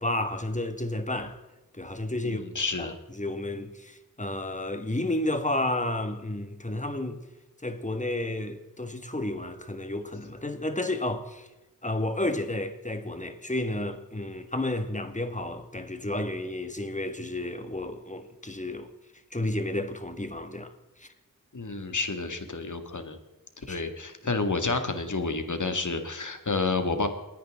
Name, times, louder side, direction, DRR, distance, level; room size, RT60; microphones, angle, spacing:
voice 1, 0.0-1.4 1.7-2.5 2.8-7.2 7.6-11.5 11.8-18.9 19.3-20.7 21.0-21.1 23.7-23.8, left 1 dB, 20° left, 1.9 m, -31 dB
voice 2, 2.2-2.9 21.5-23.2 23.7-27.1, left 3 dB, 55° left, 2.2 m, -30 dB
29.0 x 10.0 x 3.8 m
cardioid pair, 40°, 35 cm